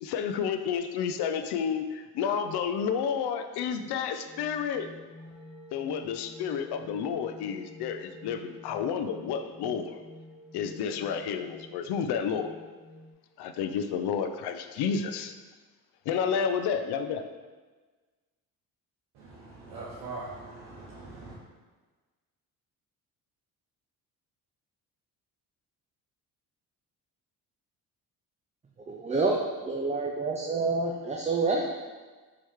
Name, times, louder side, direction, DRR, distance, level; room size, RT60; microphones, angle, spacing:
voice 1, 0.0-4.9 5.7-10.0 10.5-12.5 13.4-15.3 16.1-17.3, left 7 dB, 70° left, 8 dB, 0.5 m, -30 dB
sound 1, 4.2-13.1, left 1 dB, 85° left, 1.4 m, -49 dB
voice 2, 19.1-21.4, right 3 dB, 80° right, -7 dB, 1.0 m, -42 dB
voice 3, 28.9-31.7, right 3 dB, 20° right, 0 dB, 0.4 m, -28 dB
4.7 x 3.0 x 3.5 m, 1.3 s
supercardioid pair, 75°, 41 cm